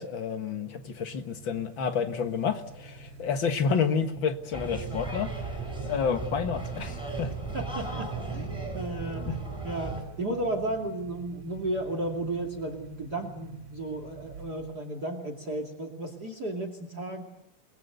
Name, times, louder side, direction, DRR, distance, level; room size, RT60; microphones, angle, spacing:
voice 1, 0.0-5.3 5.8-7.3 9.3-9.4, left 6 dB, 45° left, 8 dB, 1.9 m, -29 dB
sound 1, 0.7-14.9, right 4 dB, 50° right, 4.3 m, -49 dB
sound 2, 4.5-10.0, right 3 dB, ahead, 7.4 m, -35 dB
voice 2, 7.5-8.5 8.7-9.4 9.6-17.2, right 1 dB, 35° right, 7 dB, 2.8 m, -34 dB
29.0 x 21.0 x 8.2 m, 0.84 s
omnidirectional pair, 3.5 m